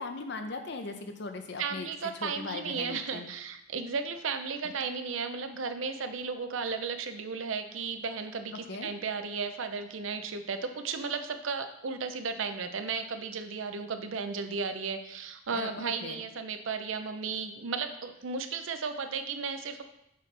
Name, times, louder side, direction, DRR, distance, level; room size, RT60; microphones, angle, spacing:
voice 1, 0.0-1.9 2.1-3.3 4.6-4.7 8.7-8.9 15.5-16.3, left 3 dB, 55° left, 6 dB, 0.7 m, -39 dB
voice 2, 1.6-19.8, right 5 dB, 75° right, 8 dB, 0.6 m, -34 dB
6.7 x 5.8 x 3.3 m, 0.79 s
head